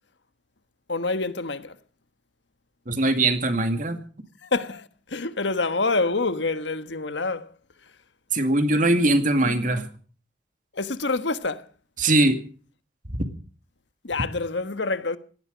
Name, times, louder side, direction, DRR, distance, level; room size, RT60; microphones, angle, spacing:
voice 1, 0.9-1.8 4.4-7.5 10.7-11.7 14.0-15.2, left 3 dB, 70° left, 1.4 m, -27 dB
voice 2, 2.9-4.0 8.3-9.9 12.0-12.4, right 2 dB, 45° right, 2.3 m, -21 dB
18.5 x 15.0 x 5.2 m
head